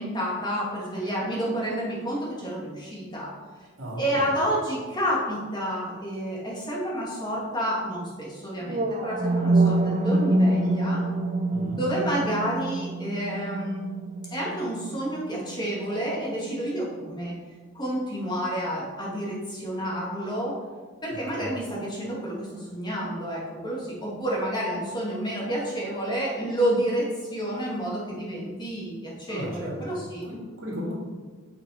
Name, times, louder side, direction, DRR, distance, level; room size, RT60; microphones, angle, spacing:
voice 1, 0.0-3.3 4.0-11.0 11.7-13.9 14.3-17.3 17.7-20.5 21.0-30.2, equal, 20° left, -5 dB, 2.3 m, -29 dB
voice 2, 3.8-4.3 11.5-11.8 21.1-21.5 29.3-30.9, equal, 70° right, -3 dB, 2.7 m, -36 dB
sound 1, 8.6-16.7, right 2 dB, 30° right, 0.6 m, -26 dB
8.9 x 6.0 x 5.0 m, 1.4 s
head